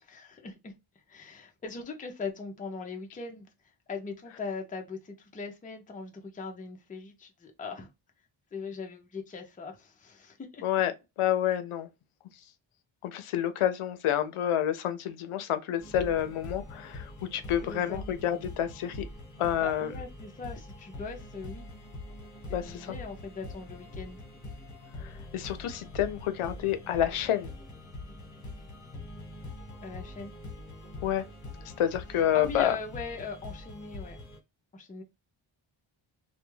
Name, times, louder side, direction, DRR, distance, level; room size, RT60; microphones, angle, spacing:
voice 1, 0.1-0.7 1.1-3.5 3.9-7.9 8.5-10.6 17.6-18.1 19.6-21.7 22.5-24.2 29.8-30.3 32.1-34.2 34.7-35.0, left 4 dB, 20° left, 0.4 m, -40 dB
voice 2, 10.6-10.9 11.2-11.9 13.0-19.1 19.4-19.9 22.5-22.9 25.0-27.5 31.0-31.2 31.8-32.8, left 11 dB, 85° left, 0.5 m, -29 dB
sound 1, 15.8-34.4, left 2 dB, 35° left, 1.0 m, -44 dB
2.2 x 2.2 x 3.0 m
wide cardioid pair, 150°, 49 cm